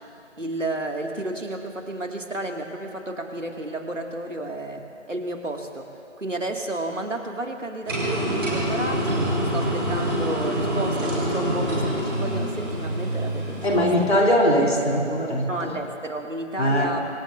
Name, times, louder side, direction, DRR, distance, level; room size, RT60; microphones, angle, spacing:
voice 1, 0.4-5.9 6.2-9.2 9.5-14.1 15.5-17.1, right 1 dB, 85° right, 2 dB, 2.3 m, -32 dB
sound 1, 7.9-14.2, right 1 dB, 20° right, 2.8 m, -26 dB
voice 2, 13.6-15.7 16.6-16.9, equal, 55° left, -1 dB, 3.5 m, -21 dB
25.0 x 21.5 x 2.6 m, 2.9 s
figure-of-eight pair, 165°, 37 cm